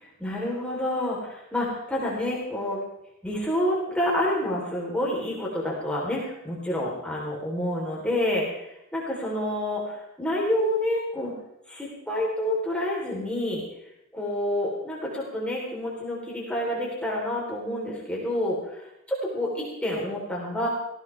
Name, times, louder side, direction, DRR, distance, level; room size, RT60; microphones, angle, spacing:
voice 1, 0.0-2.8 3.2-11.3 11.7-13.6 14.1-20.7, left 1 dB, 5° left, -4 dB, 3.9 m, -28 dB
19.0 x 16.0 x 3.5 m, 0.85 s
head